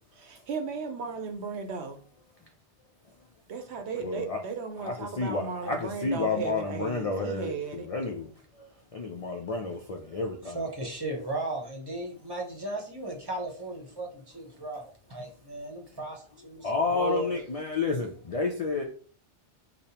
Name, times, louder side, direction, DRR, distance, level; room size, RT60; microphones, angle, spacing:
voice 1, 0.2-2.0 3.5-7.9, right 5 dB, 70° right, 0.9 m, -36 dB
voice 2, 4.0-4.4 4.8-8.3 8.6-8.7 8.9-10.6 16.6-18.8, left 3 dB, 60° left, 0.4 m, -30 dB
voice 3, 10.4-17.3, right 2 dB, 25° right, 0.7 m, -36 dB
5.0 x 2.0 x 2.8 m
omnidirectional pair, 1.2 m